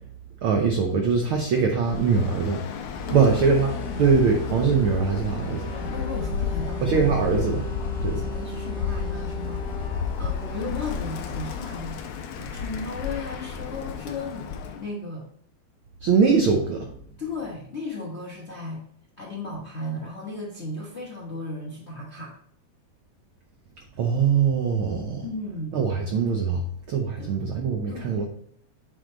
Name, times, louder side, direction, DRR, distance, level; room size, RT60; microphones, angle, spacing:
voice 1, 0.4-2.6 3.1-5.7 6.8-7.7 8.0-8.3 16.0-16.9 24.0-25.2 25.7-28.3, right 5 dB, 85° right, 2 dB, 1.1 m, -22 dB
Bird, 1.8-14.9, left 6 dB, 75° left, 1.7 m, -33 dB
sound 1, 2.9-12.4, left 1 dB, 5° right, 1.5 m, -35 dB
voice 2, 5.7-7.0 8.1-9.7 10.2-12.0 12.3-15.3 17.2-18.8 19.2-22.3 25.2-25.8 27.2-27.3 27.9-28.2, left 2 dB, 55° left, -4 dB, 0.7 m, -35 dB
8.1 x 3.7 x 3.8 m, 0.64 s
omnidirectional pair, 3.3 m